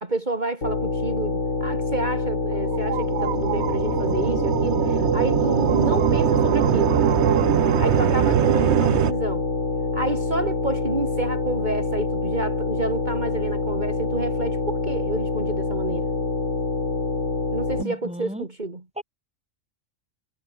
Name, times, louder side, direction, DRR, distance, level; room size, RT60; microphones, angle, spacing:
voice 1, 0.0-7.0 7.6-9.5 9.9-16.1 17.5-18.8, right 2 dB, 35° right, 2.9 m, -29 dB
sound 1, 0.6-17.8, left 3 dB, 70° left, 3.6 m, -26 dB
sound 2, 2.5-9.1, right 12 dB, 65° right, 0.9 m, -22 dB
voice 2, 17.8-18.5 19.0-19.1, equal, 5° right, 5.1 m, -34 dB
omnidirectional pair, 1.3 m